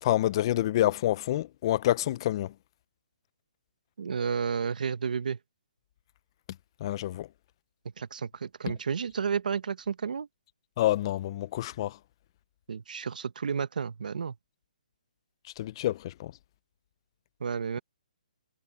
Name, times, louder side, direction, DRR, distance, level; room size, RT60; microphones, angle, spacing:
voice 1, 0.0-2.5 6.8-7.3 10.8-12.0 15.6-16.3, left 14 dB, 35° left, 0.8 m, -27 dB
voice 2, 4.0-5.4 8.0-10.3 12.7-14.3 17.4-17.8, right 6 dB, 70° right, 1.2 m, -31 dB
hypercardioid pair, 160°, 5 cm